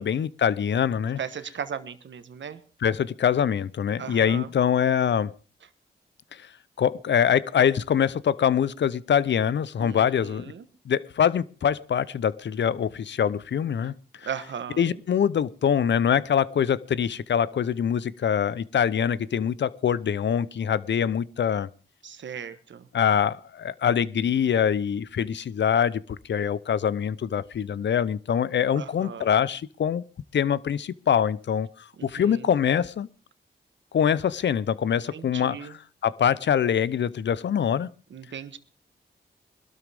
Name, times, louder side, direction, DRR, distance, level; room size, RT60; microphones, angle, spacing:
voice 1, 0.0-1.2 2.8-5.3 6.3-6.4 6.8-10.5 10.9-14.3 14.8-21.7 22.9-30.0 30.3-33.1 33.9-35.6 36.0-37.9, left 8 dB, 70° left, 19 dB, 0.7 m, -24 dB
voice 2, 1.2-2.6 4.0-4.5 9.8-10.6 14.2-14.9 22.0-22.9 28.8-29.3 32.0-32.5 35.1-35.8 38.1-38.6, right 7 dB, 75° right, 11 dB, 1.3 m, -37 dB
21.0 x 12.5 x 3.5 m, 0.36 s
cardioid pair, 60°, 19 cm